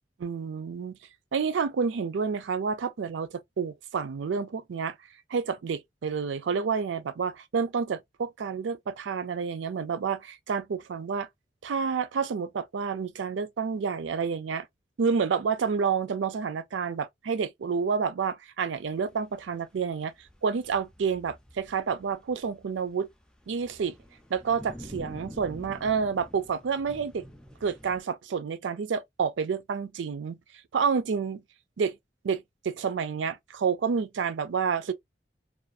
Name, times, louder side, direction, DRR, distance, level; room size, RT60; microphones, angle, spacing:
voice 1, 0.2-1.0 1.3-4.9 5.3-11.3 11.6-14.7 15.0-20.1 20.4-23.1 23.5-23.9 24.3-27.2 27.6-30.4 30.7-31.4 31.8-32.0 32.2-34.9, right 6 dB, 80° right, 0.4 m, -29 dB
sound 1, 18.9-28.0, equal, 5° left, 0.3 m, -48 dB
2.5 x 2.3 x 2.4 m
head